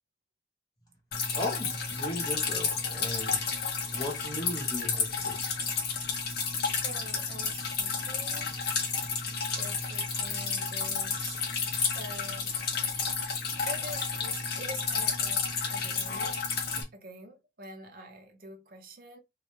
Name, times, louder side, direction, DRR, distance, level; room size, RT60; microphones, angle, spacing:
Drip, 1.1-16.8, left 5 dB, 50° left, 0.6 m, -31 dB
voice 1, 1.3-3.4 3.9-5.4, left 1 dB, 20° left, 0.8 m, -37 dB
voice 2, 6.8-8.5 9.6-11.5 11.9-12.6 13.3-13.4 13.6-16.4 16.9-19.2, right 1 dB, 45° right, 0.5 m, -45 dB
2.1 x 2.0 x 2.9 m
head